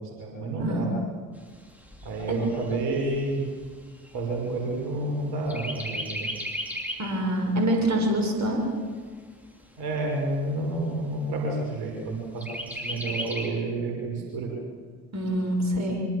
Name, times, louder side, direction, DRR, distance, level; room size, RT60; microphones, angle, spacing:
voice 1, 0.2-0.9 2.0-3.5 4.1-6.3 9.8-14.5 15.2-15.3, right 2 dB, 55° right, -1 dB, 6.4 m, -30 dB
Chirp tweet, 1.4-5.1 5.5-7.2 7.6-7.7 8.0-9.0 9.6-9.7 10.1-10.2 10.6-11.1 12.4-13.5, equal, 5° right, 5.5 m, -36 dB
voice 2, 7.0-8.6 15.1-16.0, right 1 dB, 35° right, 2 dB, 7.1 m, -25 dB
25.5 x 25.0 x 7.4 m, 1.6 s
figure-of-eight pair, 50°, 45 cm